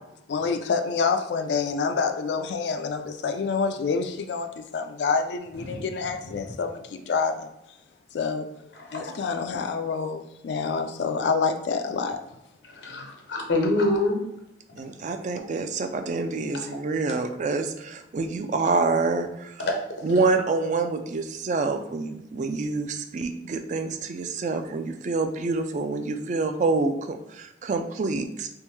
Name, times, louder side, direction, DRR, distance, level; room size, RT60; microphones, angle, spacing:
voice 1, 0.3-7.5 8.1-8.5 8.9-12.2, left 5 dB, 70° left, 7 dB, 0.3 m, -27 dB
voice 2, 8.8-9.1 12.6-14.2 14.7-14.9 16.5-16.8 18.6-18.7 19.6-20.1, left 2 dB, 85° left, 2 dB, 0.8 m, -27 dB
voice 3, 14.8-19.6 20.0-28.5, right 3 dB, 40° right, 6 dB, 0.3 m, -27 dB
3.5 x 3.0 x 3.1 m, 0.86 s
head